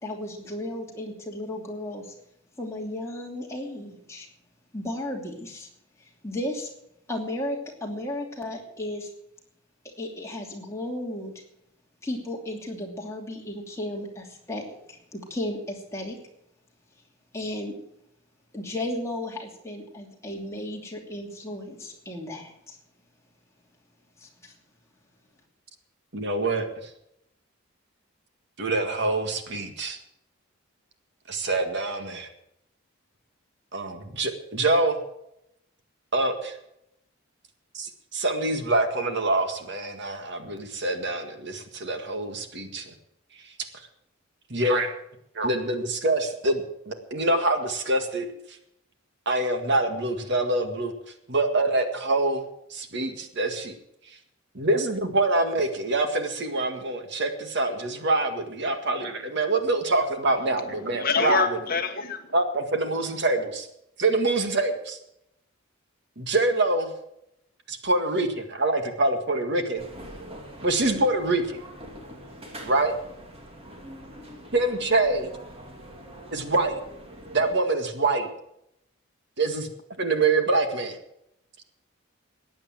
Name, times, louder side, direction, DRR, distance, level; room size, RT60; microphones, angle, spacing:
voice 1, 0.0-2.1 2.6-4.3 4.7-5.7 6.2-6.7 7.1-9.1 9.8-11.4 12.0-16.2 17.3-17.8 18.5-22.8 24.2-24.5, left 1 dB, 15° left, -1 dB, 2.8 m, -34 dB
voice 2, 26.1-26.7 28.6-30.0 31.3-32.3 33.7-35.0 36.1-36.6 37.8-42.9 44.5-45.0 45.4-48.3 49.3-50.9 51.3-52.4 52.7-53.7 54.6-61.5 62.3-63.7 64.0-65.0 66.2-66.9 67.7-69.8 70.6-71.6 72.6-72.9 74.5-75.3 76.3-76.8 77.3-78.3 79.4-79.7 80.0-81.0, right 2 dB, 55° right, 7 dB, 1.9 m, -25 dB
voice 3, 60.4-62.3, left 5 dB, 45° left, 6 dB, 1.2 m, -27 dB
sound 1, 69.8-77.6, right 1 dB, 25° right, 2.5 m, -44 dB
15.0 x 9.8 x 7.5 m, 0.79 s
head